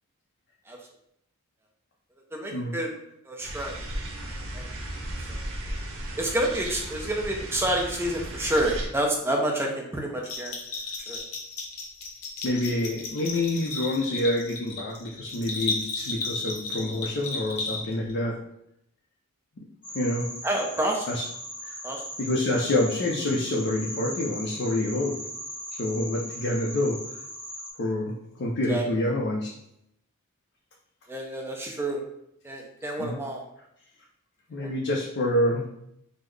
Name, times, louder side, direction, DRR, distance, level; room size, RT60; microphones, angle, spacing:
voice 1, 2.3-2.9 3.2-3.8 4.5-4.7 5.2-5.4 6.2-10.6 11.1-11.2 20.4-21.1 21.8-22.0 28.7-28.9 31.1-32.0 32.4-33.4 34.6-34.7, right 1 dB, 10° right, 0 dB, 0.4 m, -28 dB
sound 1, 3.4-8.9, right 1 dB, 60° right, 0.6 m, -35 dB
Bell, 10.2-18.1, left 3 dB, 80° left, 0.7 m, -34 dB
voice 2, 12.4-18.4 19.6-19.7 19.9-20.3 21.1-21.2 21.6-21.8 22.2-25.2 25.8-27.0 27.8-29.5 33.0-33.2 34.5-35.7, left 1 dB, 50° left, -3 dB, 0.4 m, -27 dB
sound 2, 19.8-27.7, equal, 5° left, 1.0 m, -39 dB
3.7 x 2.0 x 3.2 m, 0.77 s
head